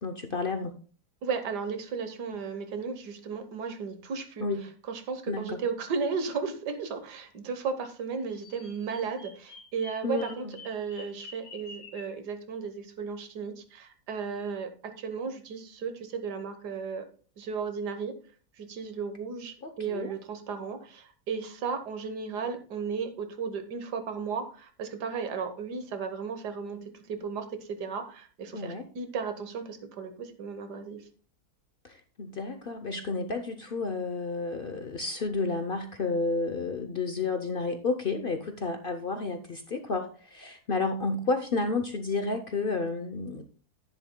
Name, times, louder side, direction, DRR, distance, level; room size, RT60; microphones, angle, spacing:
voice 1, 0.0-0.7 4.4-4.6 5.3-5.6 10.0-10.5 19.6-20.1 28.5-28.8 31.8-43.4, left 3 dB, 50° left, 7 dB, 0.7 m, -31 dB
voice 2, 1.2-4.4 4.9-17.1 17.4-18.1 18.6-31.0, right 5 dB, 90° right, 8 dB, 1.7 m, -35 dB
Bird vocalization bird call bird song, 8.3-12.1, left 3 dB, 70° left, 2.9 m, -48 dB
11.0 x 10.0 x 2.2 m, 0.40 s
omnidirectional pair, 1.7 m